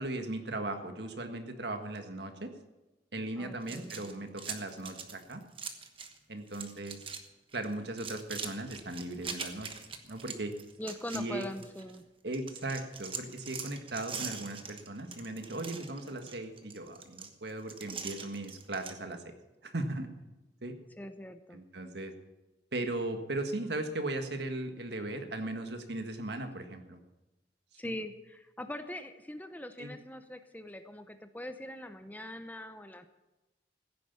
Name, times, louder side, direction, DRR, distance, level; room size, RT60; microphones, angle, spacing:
voice 1, 0.0-2.5 3.1-5.4 6.3-7.0 7.5-9.7 10.0-10.5 11.1-11.5 12.2-19.2 19.6-20.1 20.6-20.7 21.5-22.1 22.7-27.0 27.8-27.9 29.8-29.9, right 2 dB, 65° right, 6 dB, 1.7 m, -37 dB
voice 2, 3.4-4.2 10.8-12.0 21.0-21.6 27.7-33.1, left 1 dB, 10° left, 9 dB, 0.7 m, -42 dB
sound 1, 3.6-6.2 6.5-7.2 7.5-12.0 12.3-19.0, right 6 dB, 30° right, 1.3 m, -43 dB
15.5 x 9.9 x 7.0 m, 1.1 s
head